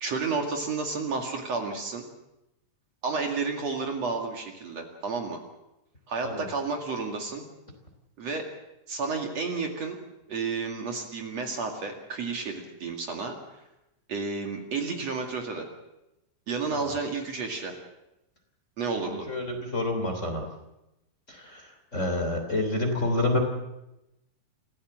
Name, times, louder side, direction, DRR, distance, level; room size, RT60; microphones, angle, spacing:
voice 1, 0.0-2.0 3.0-5.4 6.1-7.4 8.2-8.5 8.9-10.0 10.3-13.6 14.1-15.7 16.5-17.7 18.8-19.3, right 4 dB, 50° right, 2 dB, 3.1 m, -31 dB
voice 2, 19.0-20.4 21.3-23.4, left 2 dB, 20° left, 4 dB, 3.2 m, -28 dB
27.5 x 15.5 x 7.6 m, 0.92 s
omnidirectional pair, 3.9 m